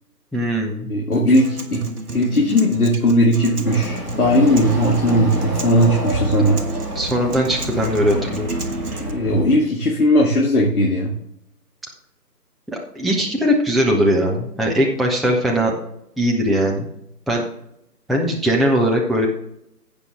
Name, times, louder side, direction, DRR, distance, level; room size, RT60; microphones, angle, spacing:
voice 1, 0.3-0.9 6.9-8.5 12.7-15.8 16.2-16.9 17.3-17.4 18.1-19.3, equal, ahead, -1 dB, 0.6 m, -20 dB
voice 2, 0.9-1.8 2.1-6.6 9.0-11.1, equal, 60° left, -2 dB, 2.1 m, -17 dB
Acoustic guitar, 1.1-9.1, right 3 dB, 60° right, 1.5 m, -32 dB
Chatter / Car passing by / Motorcycle, 3.6-9.5, equal, 25° right, 2.5 m, -28 dB
15.5 x 5.2 x 3.5 m, 0.77 s
figure-of-eight pair, 170°, 49 cm